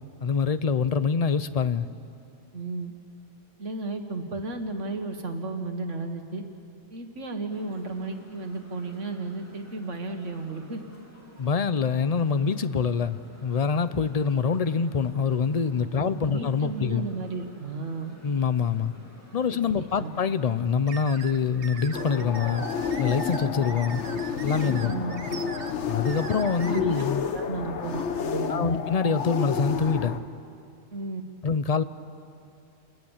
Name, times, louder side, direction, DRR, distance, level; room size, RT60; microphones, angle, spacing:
voice 1, 0.2-1.9 11.4-17.1 18.2-18.9 19.3-22.7 23.0-24.0 24.4-24.9 25.9-27.3 28.5-30.2 31.4-31.8, left 6 dB, 40° left, 13 dB, 0.6 m, -25 dB
voice 2, 2.5-2.9 3.6-6.4 6.9-10.8 16.0-18.1 19.5-20.1 24.7-25.2 26.6-27.1 27.3-28.8 30.9-31.2, right 3 dB, 75° right, 5 dB, 2.0 m, -34 dB
sound 1, 7.5-26.9, left 2 dB, 10° left, 2.6 m, -51 dB
sound 2, 20.9-26.8, right 6 dB, 55° right, 1.0 m, -42 dB
sound 3, 21.9-30.2, left 6 dB, 70° left, 1.3 m, -31 dB
29.0 x 20.0 x 7.3 m, 2.5 s
omnidirectional pair, 1.3 m